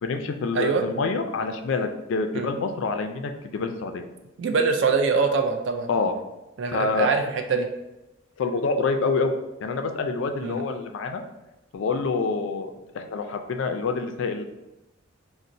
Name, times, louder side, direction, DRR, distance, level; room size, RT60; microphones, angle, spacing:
voice 1, 0.0-4.0 5.9-6.1 6.7-7.1 8.4-9.3 9.6-11.2 11.7-14.4, left 4 dB, 75° left, 6 dB, 0.3 m, -27 dB
voice 2, 0.5-0.8 2.3-2.5 4.4-5.9 6.6-7.7 10.4-10.6, right 4 dB, 65° right, 5 dB, 0.3 m, -23 dB
3.9 x 2.0 x 2.5 m, 0.97 s
head